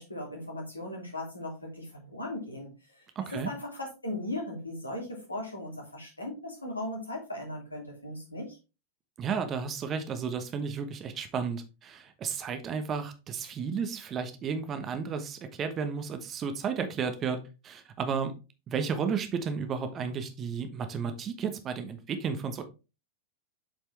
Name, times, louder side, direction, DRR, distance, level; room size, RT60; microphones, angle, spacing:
voice 1, 0.0-2.7 3.3-8.6, left 1 dB, 80° left, -1 dB, 2.8 m, -38 dB
voice 2, 3.1-3.5 9.2-18.3 18.7-22.6, right 6 dB, 30° right, 8 dB, 1.1 m, -33 dB
7.5 x 5.0 x 3.4 m, 0.30 s
figure-of-eight pair, 90°, 0 cm